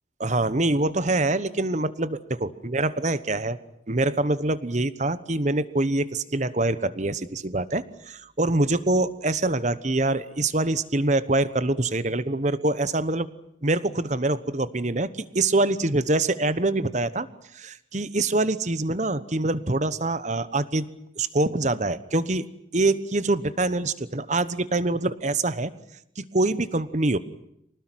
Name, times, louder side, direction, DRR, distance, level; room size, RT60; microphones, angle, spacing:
voice 1, 0.2-3.6 3.9-13.3 13.6-17.3 17.5-20.8 21.2-22.5 22.7-25.7 26.2-27.2, right 2 dB, 40° right, 15 dB, 1.1 m, -25 dB
25.0 x 19.0 x 9.1 m, 0.78 s
head